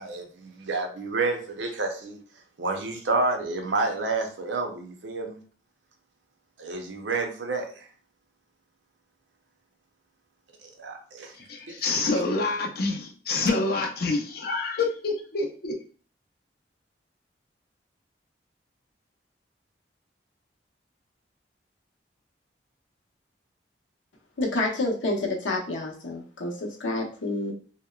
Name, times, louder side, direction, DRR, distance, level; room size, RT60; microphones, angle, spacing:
voice 1, 0.0-2.2 2.6-5.4 6.6-7.9 10.6-11.3 11.7-11.8, right 3 dB, 75° right, 3 dB, 0.5 m, -29 dB
voice 2, 11.3-15.8, left 3 dB, 55° left, 2 dB, 0.5 m, -27 dB
voice 3, 24.4-27.5, left 2 dB, 90° left, -1 dB, 0.7 m, -28 dB
2.8 x 2.0 x 2.2 m, 0.42 s
head